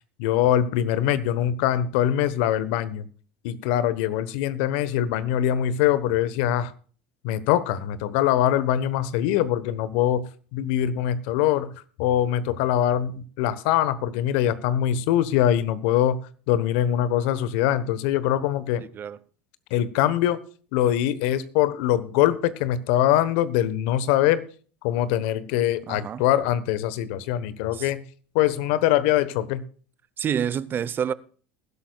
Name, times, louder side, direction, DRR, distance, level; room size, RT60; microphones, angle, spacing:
voice 1, 0.2-3.1 3.4-6.7 7.2-11.7 12.0-18.8 19.7-20.4 20.7-24.4 24.8-28.0 28.3-29.6, left 11 dB, 70° left, 1.2 m, -23 dB
voice 2, 25.9-26.2 27.7-27.9 30.2-31.1, right 8 dB, 35° right, 0.8 m, -28 dB
20.5 x 11.5 x 2.4 m
hypercardioid pair, 85°, 6 cm